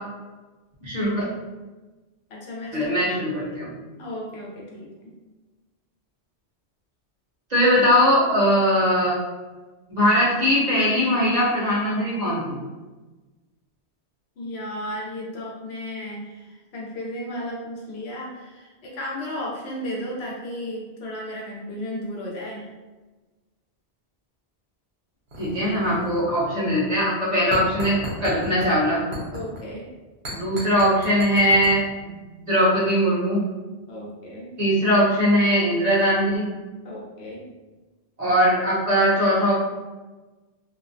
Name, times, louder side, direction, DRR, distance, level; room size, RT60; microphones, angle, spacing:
voice 1, 0.8-1.2 2.7-3.7 7.5-9.1 9.9-12.6 25.4-29.0 30.3-32.1 32.4-33.4 34.6-36.5 38.2-39.5, equal, 45° right, -7 dB, 0.7 m, -20 dB
voice 2, 2.3-2.9 3.9-5.1 14.4-22.7 29.3-29.9 33.9-34.5 36.8-37.5, left 1 dB, 75° left, -2 dB, 0.9 m, -34 dB
sound 1, 25.3-26.4 26.7-26.9 27.5-28.7 29.1-29.6 30.2-31.7, equal, 65° right, 1.0 m, -35 dB
2.4 x 2.1 x 2.5 m, 1.2 s
omnidirectional pair, 1.1 m